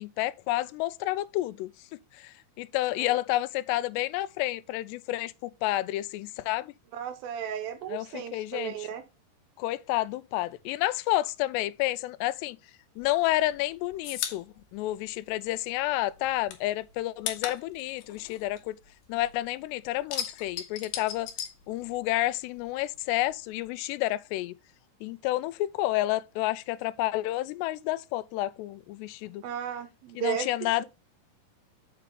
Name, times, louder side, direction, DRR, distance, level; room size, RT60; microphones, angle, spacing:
voice 1, 0.0-6.7 7.9-8.9 9.6-12.6 13.0-18.8 19.1-21.3 21.7-24.6 25.0-29.4 30.2-30.9, left 16 dB, 90° left, 2.7 m, -30 dB
voice 2, 6.9-9.0 29.4-30.5, right 9 dB, 75° right, 2.4 m, -34 dB
sound 1, 13.0-15.8 16.1-19.4 19.7-22.3 22.6-23.7, left 9 dB, 70° left, 2.7 m, -38 dB
7.5 x 5.9 x 3.7 m
omnidirectional pair, 4.8 m